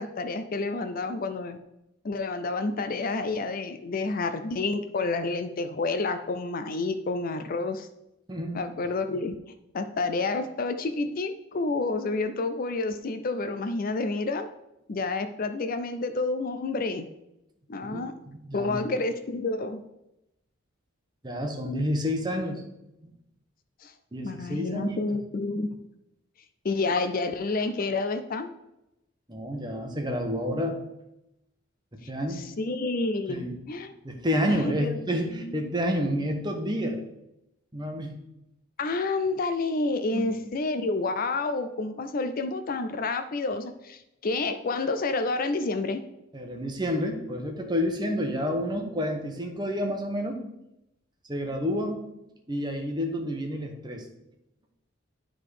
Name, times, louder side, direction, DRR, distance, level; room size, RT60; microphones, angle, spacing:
voice 1, 0.0-1.6 2.0-7.9 8.5-9.4 9.7-14.5 14.9-17.1 17.7-18.1 18.5-19.8 23.8-23.9 24.2-25.7 26.6-28.5 32.3-33.9 34.5-35.1 35.4-35.5 38.8-46.0, left 3 dB, 45° left, 9 dB, 0.4 m, -29 dB
voice 2, 8.3-8.6 17.8-18.9 21.2-22.6 24.1-25.0 29.3-30.8 32.1-32.4 33.3-33.6 34.0-37.0 37.7-38.1 40.1-40.3 46.3-50.4 51.3-52.0 52.5-54.1, equal, 20° right, 3 dB, 1.1 m, -29 dB
10.0 x 3.8 x 4.9 m, 0.88 s
head